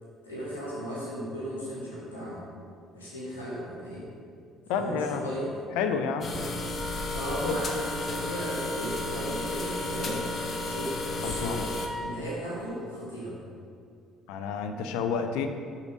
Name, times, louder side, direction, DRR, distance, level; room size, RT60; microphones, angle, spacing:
voice 1, 0.2-2.4 2.9-4.0 4.7-5.6 7.1-10.3 10.6-11.7 12.0-13.4, equal, 85° left, -7 dB, 2.7 m, -36 dB
voice 2, 4.7-5.3 5.8-6.3 7.4-7.6 11.2-11.7 14.3-15.5, left 6 dB, 65° left, 7 dB, 0.7 m, -30 dB
sound 1, 6.2-11.9, left 2 dB, 40° left, 1.1 m, -33 dB
Wind instrument woodwind instrument, 6.7-12.2, equal, ahead, 0.4 m, -39 dB
12.0 x 5.7 x 5.2 m, 2.3 s
figure-of-eight pair, 50°, 0 cm